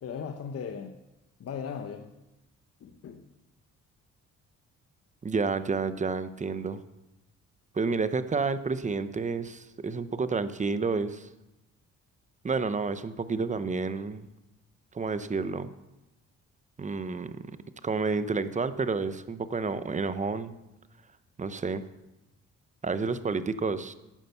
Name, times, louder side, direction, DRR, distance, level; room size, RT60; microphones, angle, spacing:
voice 1, 0.0-0.9 1.4-2.1 2.8-3.2, left 6 dB, 50° left, 5 dB, 1.0 m, -37 dB
voice 2, 5.2-6.8 7.7-11.3 12.4-14.3 14.9-15.7 16.8-17.5 17.8-20.5 21.4-21.8 22.8-23.9, right 4 dB, 25° right, 13 dB, 0.8 m, -30 dB
12.0 x 8.8 x 6.8 m, 0.98 s
cardioid pair, 90°, 30 cm